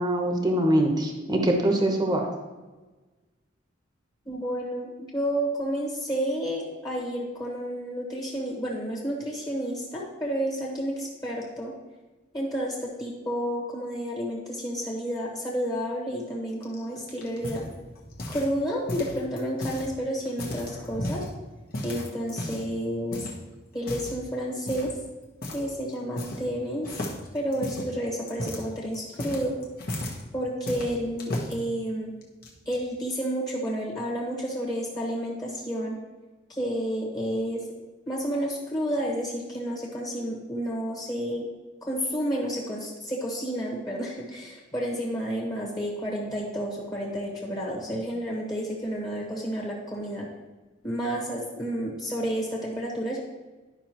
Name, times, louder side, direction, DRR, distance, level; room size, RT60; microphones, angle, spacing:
voice 1, 0.0-2.3, right 1 dB, 20° right, 2 dB, 1.0 m, -23 dB
voice 2, 4.2-11.7 12.3-17.6 18.3-21.2 21.8-23.3 23.7-24.9 25.5-27.0 27.3-29.6 30.3-32.1 32.6-36.0 36.5-37.6 38.1-41.5 41.8-50.3 50.8-53.2, equal, 20° left, -3 dB, 1.4 m, -30 dB
sound 1, 16.6-18.6 18.9-19.9 20.3-21.3 21.7-22.7 23.1-23.4 23.8-24.2 24.7-25.0 25.4-25.7 25.9-26.6 26.8-30.2 30.7-31.5 32.2-32.8, left 1 dB, 50° left, 1.3 m, -35 dB
11.5 x 5.5 x 3.0 m, 1.2 s
head